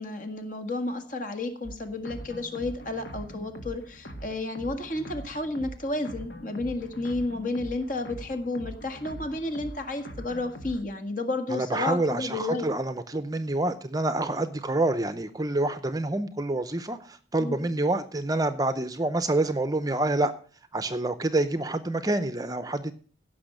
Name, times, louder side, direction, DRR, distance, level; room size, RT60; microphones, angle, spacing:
voice 1, 0.0-12.7 17.4-17.7, left 2 dB, 45° left, 7 dB, 1.8 m, -32 dB
sound 1, 1.6-10.8, right 1 dB, 75° left, 2.2 m, -42 dB
voice 2, 11.5-20.3 20.7-22.9, right 2 dB, 20° right, 11 dB, 0.6 m, -27 dB
16.5 x 6.2 x 6.5 m, 0.41 s
head